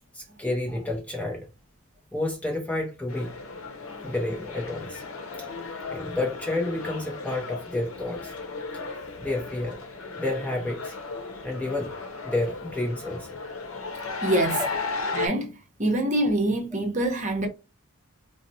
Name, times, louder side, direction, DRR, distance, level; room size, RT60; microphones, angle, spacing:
voice 1, 0.1-1.5 2.1-3.3 4.0-5.0 5.4-5.5 5.9-8.3 9.2-9.8 10.2-10.9 11.4-11.9 12.2-13.4 14.6-14.7, left 2 dB, 5° left, 0.5 m, -30 dB
sound 1, 3.1-15.3, left 3 dB, 80° left, 0.7 m, -35 dB
voice 2, 14.2-14.7 15.1-17.5, right 1 dB, 35° right, 0.7 m, -25 dB
4.0 x 2.0 x 2.6 m
head